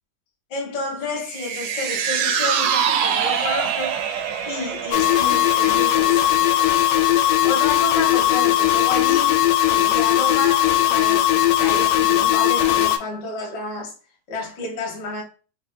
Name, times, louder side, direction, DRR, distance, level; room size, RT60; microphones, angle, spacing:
voice 1, 0.5-4.0 4.5-6.8 7.4-9.3 9.7-13.9 14.3-15.2, left 2 dB, 55° left, 1.2 m, -30 dB
sound 1, 1.2-7.7 8.0-8.1, right 8 dB, 85° right, 2.1 m, -25 dB
sound 2, 4.9-13.0, left 12 dB, 85° left, 2.1 m, -18 dB
4.8 x 2.7 x 2.2 m
omnidirectional pair, 3.7 m